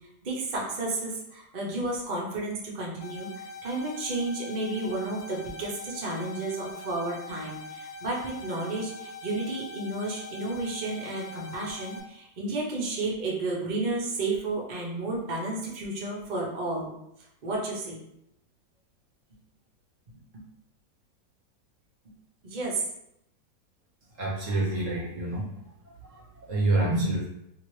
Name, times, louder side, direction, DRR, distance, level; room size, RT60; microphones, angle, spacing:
voice 1, 0.2-3.3 3.6-16.9 17.4-18.0 22.4-22.8, right 2 dB, 40° right, -3 dB, 0.7 m, -32 dB
sound 1, 3.0-12.0, left 3 dB, 70° left, 0.6 m, -42 dB
voice 2, 24.2-25.4 26.5-27.3, right 2 dB, 60° right, -3 dB, 1.0 m, -26 dB
2.9 x 2.8 x 3.1 m, 0.79 s
omnidirectional pair, 1.7 m